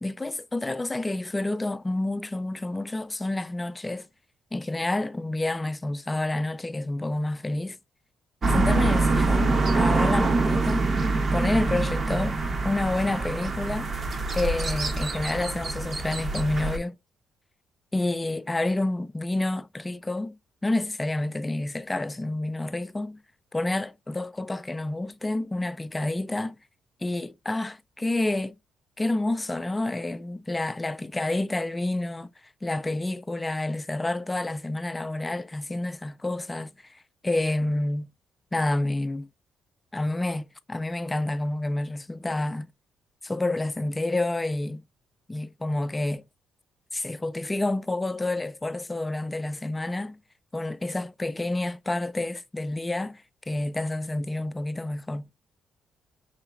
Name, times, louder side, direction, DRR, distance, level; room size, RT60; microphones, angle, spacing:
voice 1, 0.0-4.1 4.5-7.8 8.5-10.9 11.3-12.4 12.6-13.9 14.3-17.0 17.9-23.2 23.5-26.6 27.0-28.6 29.0-32.3 32.6-38.1 38.5-39.3 39.9-42.7 43.2-44.8 45.3-46.2 46.9-50.2 50.5-55.3, left 2 dB, 15° left, 0.4 m, -29 dB
sound 1, 8.4-16.8, right 3 dB, 40° right, 0.8 m, -25 dB
5.7 x 3.0 x 2.4 m
cardioid pair, 90°, 0 cm